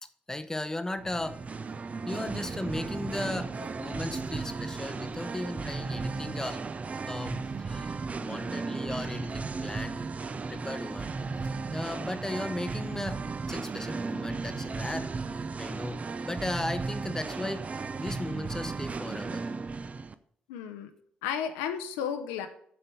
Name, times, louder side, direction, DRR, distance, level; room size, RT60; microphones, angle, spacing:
voice 1, 0.3-1.4 2.1-6.6 7.1-10.0 10.5-11.2 11.7-15.1 15.6-17.7 18.0-19.5, left 1 dB, 10° left, 10 dB, 0.8 m, -36 dB
Singing, 1.0-20.1, right 4 dB, 30° right, 0.5 m, -35 dB
voice 2, 20.5-20.9 21.2-22.5, left 8 dB, 70° left, 7 dB, 0.7 m, -33 dB
7.7 x 5.2 x 7.0 m, 0.64 s
figure-of-eight pair, 40°, 4 cm